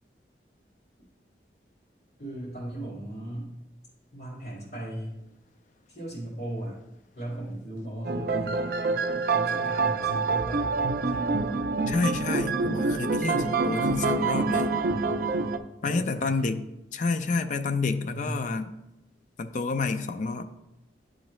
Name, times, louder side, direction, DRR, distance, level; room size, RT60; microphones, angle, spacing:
voice 1, 2.2-3.5 4.1-5.2 5.9-6.8 7.2-8.7 9.3-10.7 11.0-11.4 15.8-16.7 18.1-18.5, right 1 dB, 70° left, -10 dB, 2.2 m, -37 dB
sound 1, 8.0-15.6, right 3 dB, 55° right, 0.4 m, -26 dB
voice 2, 11.9-14.8 15.8-16.6 16.9-18.7 19.4-20.4, left 4 dB, 45° left, 9 dB, 0.4 m, -29 dB
10.5 x 3.8 x 3.1 m, 0.92 s
head